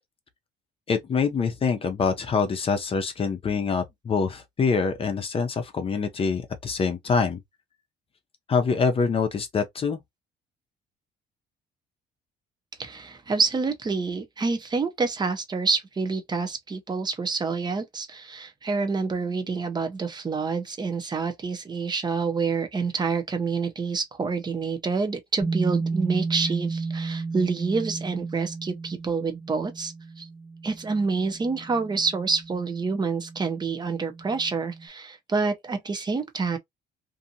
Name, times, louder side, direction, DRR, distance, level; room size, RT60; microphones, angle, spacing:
voice 1, 0.9-7.4 8.5-10.0, left 5 dB, 35° left, 0.6 m, -25 dB
voice 2, 12.8-30.3 30.6-36.6, right 4 dB, 25° right, 0.7 m, -27 dB
sound 1, 25.4-34.9, right 4 dB, 15° left, 1.0 m, -34 dB
2.6 x 2.5 x 2.7 m
cardioid pair, 110°, 17 cm